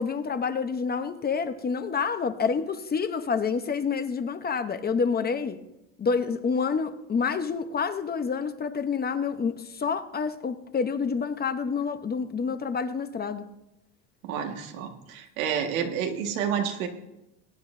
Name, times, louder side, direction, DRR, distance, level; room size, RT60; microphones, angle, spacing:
voice 1, 0.0-5.6 6.0-13.5, left 5 dB, 25° left, 10 dB, 0.9 m, -28 dB
voice 2, 14.2-16.9, right 8 dB, 90° right, 3 dB, 1.9 m, -29 dB
22.5 x 9.7 x 2.7 m, 0.91 s
supercardioid pair, 110°, 40 cm